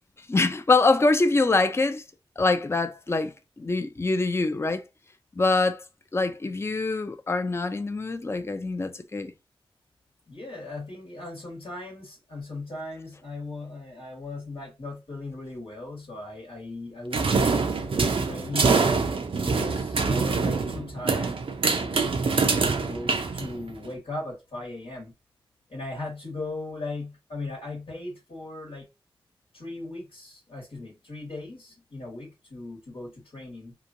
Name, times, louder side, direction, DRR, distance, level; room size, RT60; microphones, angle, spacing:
voice 1, 0.3-2.0 2.4-4.8 5.4-5.8 6.1-9.3, left 3 dB, 25° left, 0.4 m, -24 dB
voice 2, 10.3-17.6 18.2-18.7 19.4-21.4 21.8-25.1 25.7-28.9 29.5-33.7, left 2 dB, 80° left, 1.3 m, -38 dB
sound 1, 17.1-23.9, right 4 dB, 70° right, 0.5 m, -25 dB
2.9 x 2.3 x 2.5 m
cardioid pair, 45°, 10 cm